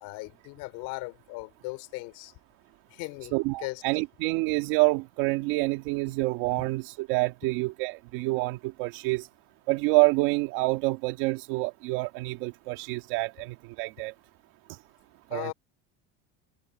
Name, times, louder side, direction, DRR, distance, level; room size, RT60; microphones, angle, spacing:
voice 1, 0.0-2.3 2.9-3.8 15.3-15.5, left 24 dB, 75° left, 3.3 m, -38 dB
voice 2, 3.3-9.3 9.7-14.1 14.7-14.8 15.3-15.5, right 22 dB, 75° right, 1.8 m, -27 dB
cardioid pair, 130°, 32 cm